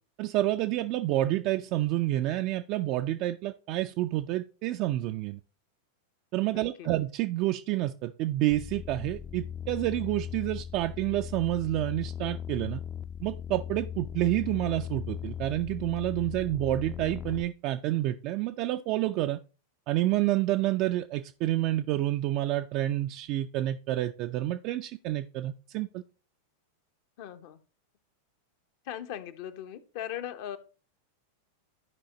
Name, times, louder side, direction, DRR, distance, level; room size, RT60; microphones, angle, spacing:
voice 1, 0.2-5.4 6.3-12.8 13.2-19.4 19.9-26.0, right 15 dB, 40° right, 0.4 m, -29 dB
voice 2, 6.5-6.9 27.2-27.6 28.8-30.6, left 11 dB, 50° left, 0.8 m, -39 dB
sound 1, 8.5-17.4, left 9 dB, 25° left, 0.5 m, -38 dB
14.0 x 4.9 x 2.9 m
figure-of-eight pair, 90°, 0 cm